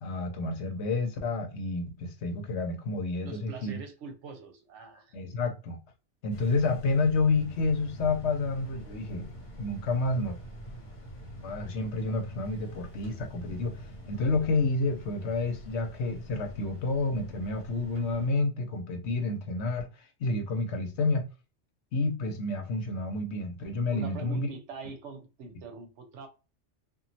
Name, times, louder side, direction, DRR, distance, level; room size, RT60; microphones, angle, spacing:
voice 1, 0.0-3.8 5.1-5.8 6.2-9.3 9.6-10.4 11.4-19.9 20.2-21.3 21.9-24.5, left 3 dB, 70° left, 0.9 m, -29 dB
voice 2, 3.2-5.2 23.9-26.3, right 4 dB, 75° right, 1.0 m, -43 dB
sound 1, 6.3-18.3, equal, 40° left, 1.0 m, -45 dB
3.0 x 2.4 x 2.6 m
omnidirectional pair, 1.2 m